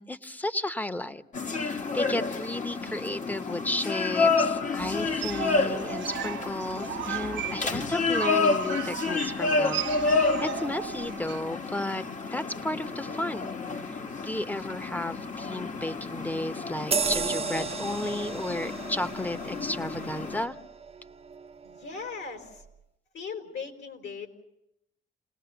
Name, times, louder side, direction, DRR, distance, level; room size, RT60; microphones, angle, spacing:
voice 1, 0.0-12.0 12.3-20.6, left 1 dB, 10° left, 11 dB, 1.0 m, -33 dB
sound 1, 1.3-20.5, left 4 dB, 40° left, 1.3 m, -30 dB
sound 2, 4.8-11.4, right 10 dB, 65° right, 1.0 m, -36 dB
sound 3, 16.9-21.9 22.3-22.5, right 5 dB, 30° right, 0.8 m, -34 dB
voice 2, 21.6-22.6 23.1-24.3, left 5 dB, 70° left, 5 dB, 4.6 m, -38 dB
27.5 x 19.0 x 7.1 m, 0.84 s
cardioid pair, 90°, 20 cm